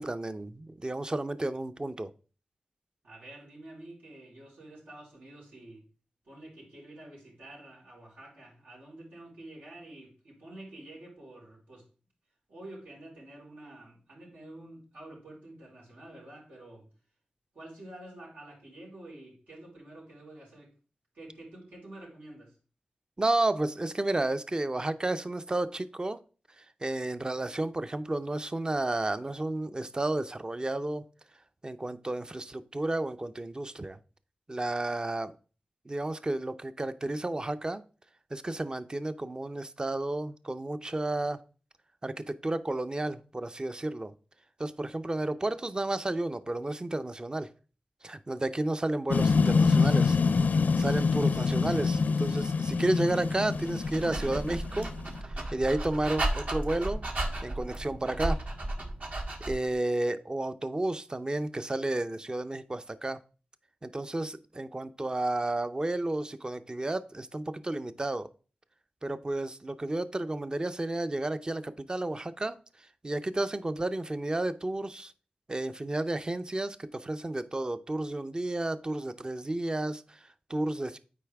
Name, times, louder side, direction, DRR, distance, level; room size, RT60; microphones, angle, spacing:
voice 1, 0.0-2.1 23.2-26.2 26.6-31.0 31.6-34.0 34.5-35.3 35.9-37.8 38.3-41.4 42.0-44.1 44.6-47.5 48.0-50.2 50.8-54.9 55.2-57.1 57.4-58.4 59.5-63.2 63.8-68.3 69.0-72.6 73.0-75.1 75.5-81.0, right 2 dB, 30° right, 12 dB, 0.5 m, -32 dB
voice 2, 3.0-5.8 6.2-11.8 12.5-16.9 17.5-20.7 21.1-22.5, right 1 dB, 85° right, -5 dB, 4.1 m, -48 dB
sound 1, 49.1-55.2, left 4 dB, 75° left, 0.5 m, -26 dB
Dog, 53.6-59.7, right 1 dB, 60° right, 1.4 m, -34 dB
8.3 x 4.7 x 3.4 m, 0.37 s
cardioid pair, 55°, 3 cm